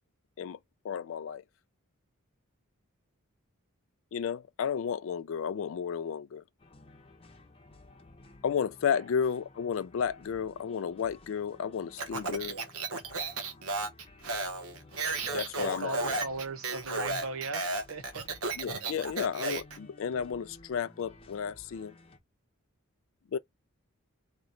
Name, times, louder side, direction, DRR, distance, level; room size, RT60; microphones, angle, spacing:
voice 1, 0.8-1.4 4.1-6.4 8.4-12.6 15.3-16.2 18.6-21.9 23.3-23.4, left 7 dB, 65° left, 0.3 m, -33 dB
sound 1, 6.6-22.2, left 2 dB, 25° left, 0.9 m, -55 dB
Speech, 12.0-19.8, right 3 dB, 90° right, 1.0 m, -34 dB
voice 2, 15.1-18.3, right 3 dB, 65° right, 0.7 m, -39 dB
3.1 x 3.0 x 3.8 m
head